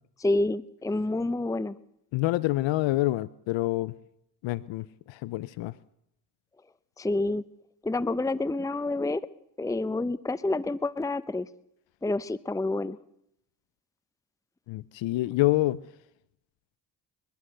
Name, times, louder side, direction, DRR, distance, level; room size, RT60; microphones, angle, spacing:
voice 1, 0.2-1.8 7.0-7.4 7.8-9.2 9.6-11.5 12.0-13.0, left 2 dB, 5° left, 16 dB, 0.8 m, -28 dB
voice 2, 2.1-3.9 4.4-5.7 14.7-15.8, left 17 dB, 80° left, 19 dB, 0.7 m, -27 dB
29.0 x 11.5 x 7.8 m, 0.78 s
supercardioid pair, 60°, 44 cm